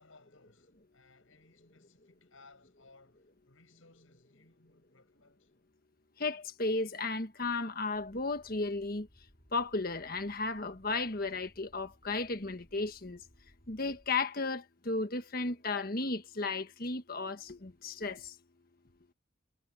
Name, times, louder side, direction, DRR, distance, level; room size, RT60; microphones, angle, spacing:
voice 1, 0.0-5.5, left 3 dB, 85° left, 6.8 m, -62 dB
voice 2, 6.2-9.1 9.5-13.2 13.7-18.3, left 3 dB, 45° left, 1.5 m, -34 dB
sound 1, 7.9-14.1, equal, 25° left, 7.0 m, -64 dB
head